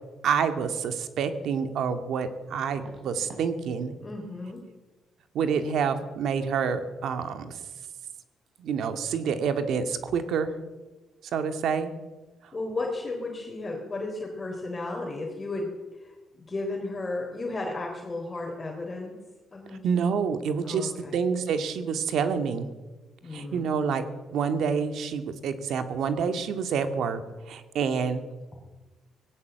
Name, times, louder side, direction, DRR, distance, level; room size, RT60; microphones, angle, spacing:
voice 1, 0.2-3.9 5.3-7.6 8.6-10.5 11.3-11.9 19.8-22.7 23.3-24.0 24.3-28.2, right 6 dB, 70° right, 9 dB, 2.0 m, -28 dB
sound 1, 2.7-3.5 3.8-4.2 4.5-4.6 7.6-7.7 7.9-8.2 8.5-8.6, right 2 dB, 50° right, 7.5 m, -49 dB
voice 2, 4.0-4.6 12.5-15.7 16.0-19.2 19.5-19.9 20.6-21.2 23.2-23.7, left 2 dB, 20° left, 0 dB, 3.7 m, -34 dB
19.0 x 17.0 x 8.1 m, 1.2 s
cardioid pair, 125°, 0 cm